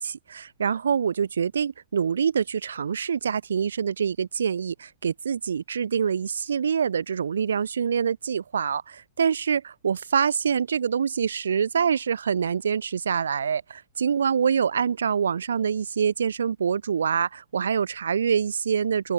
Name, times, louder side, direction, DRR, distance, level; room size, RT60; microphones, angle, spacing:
voice 1, 0.0-19.1, right 7 dB, 70° right, 3.4 m, -25 dB
figure-of-eight pair, 90°, 0 cm